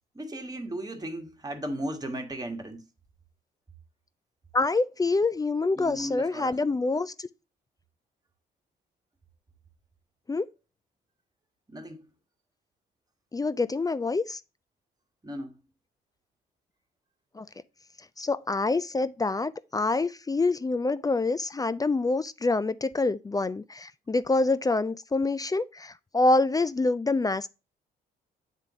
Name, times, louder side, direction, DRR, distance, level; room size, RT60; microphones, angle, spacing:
voice 1, 0.1-2.8 5.8-6.5 11.7-12.1 15.2-15.5, right 1 dB, 20° right, 1.4 m, -36 dB
voice 2, 4.5-7.3 10.3-10.5 13.3-14.4 17.3-17.5 18.2-27.5, left 3 dB, 20° left, 0.4 m, -26 dB
8.1 x 3.8 x 3.5 m
hypercardioid pair, 50°, 20 cm